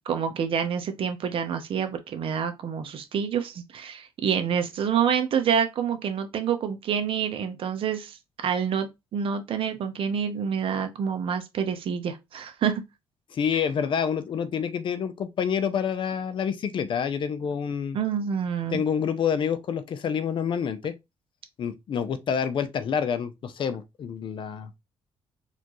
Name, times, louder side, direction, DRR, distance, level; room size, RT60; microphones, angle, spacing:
voice 1, 0.1-8.2 8.4-12.8 17.9-18.8, right 7 dB, 60° right, 0.8 m, -27 dB
voice 2, 13.3-18.0 18.7-20.9 21.6-24.7, left 7 dB, 50° left, 0.6 m, -28 dB
4.3 x 2.6 x 3.0 m
cardioid pair, 110°, 10 cm